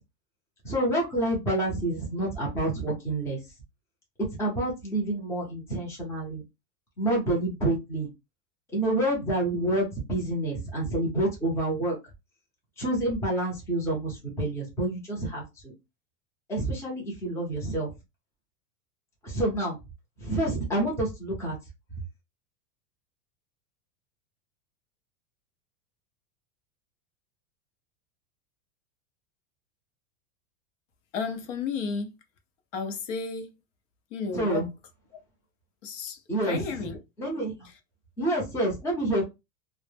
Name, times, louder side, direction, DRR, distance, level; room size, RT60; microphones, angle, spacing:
voice 1, 0.6-3.4 4.2-6.4 7.0-8.1 8.7-11.9 12.8-15.7 16.5-17.9 19.2-19.8 20.2-21.6 34.3-34.7 36.3-36.6 37.2-37.5 38.2-39.2, right 1 dB, 5° left, 0.6 m, -28 dB
voice 2, 31.1-32.1 32.7-33.6 34.1-34.7 35.8-37.0 37.6-37.8, left 5 dB, 65° left, 0.7 m, -33 dB
2.0 x 2.0 x 3.2 m
supercardioid pair, 155°, 41 cm